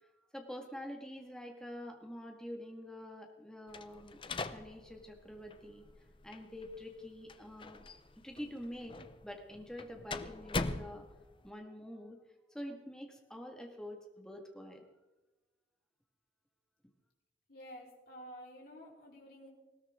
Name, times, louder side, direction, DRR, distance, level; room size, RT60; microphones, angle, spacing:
voice 1, 0.0-5.9 6.2-7.8 8.2-11.1 11.4-12.2 12.5-14.9, left 1 dB, 5° left, 2 dB, 1.9 m, -46 dB
sound 1, 3.7-11.5, left 3 dB, 30° left, 0.6 m, -43 dB
voice 2, 17.5-19.5, equal, 55° left, -2 dB, 4.4 m, -51 dB
20.0 x 17.0 x 3.7 m, 1.1 s
head